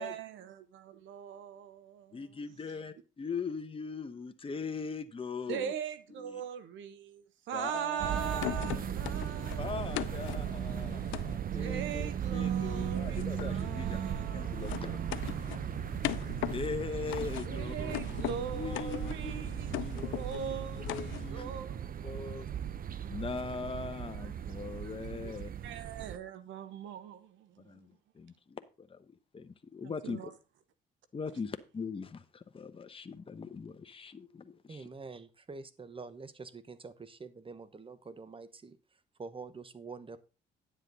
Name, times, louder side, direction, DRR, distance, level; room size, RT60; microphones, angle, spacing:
voice 1, 0.0-2.2 5.5-10.4 11.5-15.4 17.5-21.9 24.2-24.3 24.8-24.9 25.2-27.9 29.8-30.3, right 9 dB, 80° right, 1.1 m, -41 dB
voice 2, 2.1-5.7 6.2-6.4 7.5-8.7 9.6-14.0 14.3-15.0 16.5-17.9 18.5-19.4 19.8-20.2 20.9-21.6 22.0-22.5 23.0-25.5 27.6-30.3 31.1-34.9, left 5 dB, 30° left, 0.9 m, -40 dB
sound 1, 8.0-26.2, right 9 dB, 50° right, 0.7 m, -37 dB
sound 2, 8.4-11.4 12.3-21.3, left 16 dB, 85° left, 0.5 m, -41 dB
voice 3, 34.7-38.8 39.2-40.2, right 4 dB, 25° right, 1.1 m, -46 dB
10.0 x 7.5 x 4.0 m
supercardioid pair, 75°, 20 cm